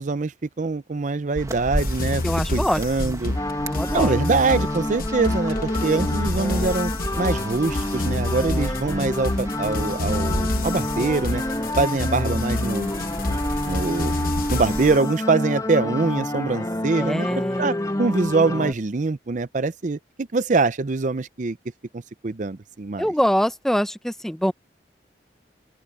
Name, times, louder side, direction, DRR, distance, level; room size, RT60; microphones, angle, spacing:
voice 1, 0.0-2.2 2.5-3.3 3.9-6.9 7.2-11.4 11.8-12.9 13.6-14.1 14.5-17.3 17.6-21.6 21.9-23.0, right 3 dB, 45° right, 0.6 m, -24 dB
sound 1, 1.4-15.0, equal, 20° right, 1.5 m, -33 dB
sound 2, 1.8-15.0, left 2 dB, 55° left, 1.0 m, -29 dB
voice 2, 2.2-3.3 3.6-4.1 13.6-13.7 16.9-18.1 23.0-24.5, equal, ahead, 0.7 m, -25 dB
sound 3, 3.3-18.7, left 1 dB, 20° left, 1.9 m, -28 dB
open air
head